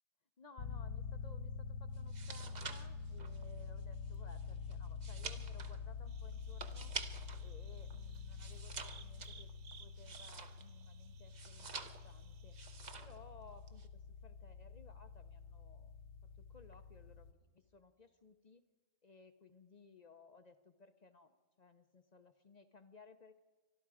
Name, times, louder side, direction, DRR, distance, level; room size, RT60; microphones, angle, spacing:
voice 1, 0.4-6.9 7.4-9.5 9.8-12.6 13.0-16.0 16.4-18.6 19.0-21.3 21.6-23.4, left 3 dB, 45° left, 9 dB, 0.6 m, -60 dB
sound 1, 0.6-17.3, left 5 dB, 80° left, 1.1 m, -47 dB
sound 2, 2.0-7.5 7.8-10.8 11.3-12.2 12.5-13.2 13.5-13.9, right 5 dB, 40° right, 0.8 m, -48 dB
sound 3, 6.1-12.8, right 7 dB, 75° right, 1.1 m, -62 dB
24.5 x 12.0 x 4.8 m, 1.3 s
omnidirectional pair, 1.3 m